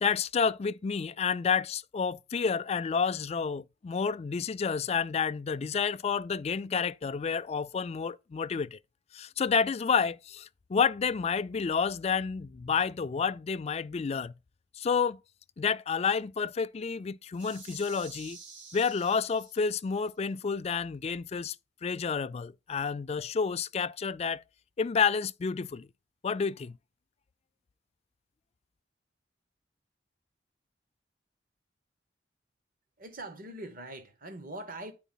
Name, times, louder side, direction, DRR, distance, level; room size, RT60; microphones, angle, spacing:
voice 1, 0.0-8.8 9.1-14.3 14.8-15.2 15.6-18.4 18.7-21.6 21.8-24.4 24.8-25.9 26.2-26.8, left 6 dB, 35° left, 0.3 m, -30 dB
sound 1, 17.3-19.9, right 5 dB, 80° right, 1.9 m, -50 dB
voice 2, 33.0-34.9, right 1 dB, 50° right, 1.2 m, -42 dB
9.1 x 4.5 x 5.6 m
head